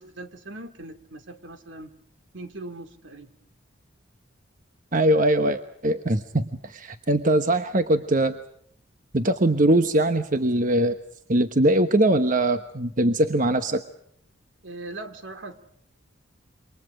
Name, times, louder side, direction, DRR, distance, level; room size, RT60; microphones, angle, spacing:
voice 1, 0.0-1.9 2.3-3.3 14.6-15.6, right 2 dB, 70° right, 9 dB, 2.6 m, -40 dB
voice 2, 4.9-8.3 9.1-11.0 11.3-13.8, right 1 dB, 40° right, 9 dB, 1.1 m, -21 dB
28.0 x 25.0 x 5.0 m, 0.68 s
head